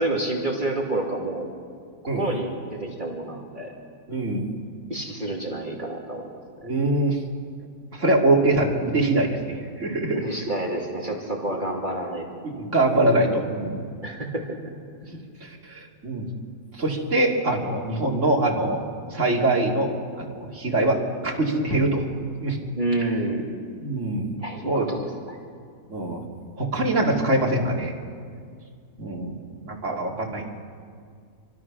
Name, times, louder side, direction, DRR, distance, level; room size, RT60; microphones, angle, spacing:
voice 1, 0.0-1.5 2.0-3.8 4.9-6.3 10.1-12.2 14.0-14.6 22.8-23.5 24.4-25.4 29.9-30.0, right 1 dB, 30° right, -1 dB, 2.6 m, -29 dB
voice 2, 4.1-4.5 6.6-7.2 7.9-10.2 12.4-13.8 15.4-16.3 16.7-18.8 19.1-22.0 22.4-22.6 23.8-24.3 24.6-24.9 25.9-26.2 26.6-27.9 29.0-30.4, right 2 dB, 50° right, -2 dB, 3.3 m, -23 dB
27.5 x 24.0 x 6.2 m, 2.1 s
omnidirectional pair, 1.6 m